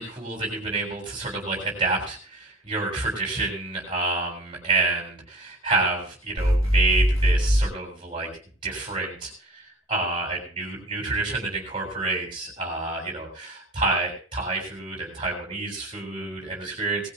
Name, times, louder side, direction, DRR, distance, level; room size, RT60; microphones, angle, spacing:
voice 1, 0.0-8.3 8.6-17.1, right 3 dB, 25° right, -1 dB, 7.4 m, -28 dB
sound 1, 6.4-7.6, equal, 80° left, 3.4 m, -20 dB
20.0 x 15.0 x 2.5 m, 0.41 s
head